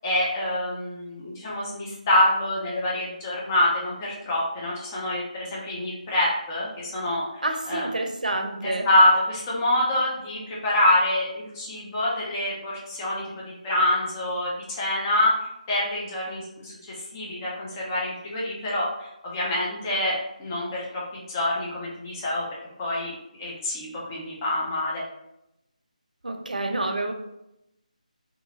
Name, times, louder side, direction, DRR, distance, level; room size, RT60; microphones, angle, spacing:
voice 1, 0.0-7.4 7.7-7.9 8.6-15.3 15.7-22.5 22.8-23.1 23.4-25.0, left 1 dB, 20° left, -5 dB, 0.6 m, -26 dB
voice 2, 7.4-8.9 26.2-27.1, right 2 dB, 80° right, 5 dB, 0.5 m, -28 dB
2.7 x 2.5 x 2.8 m, 0.86 s
figure-of-eight pair, 160°, 4 cm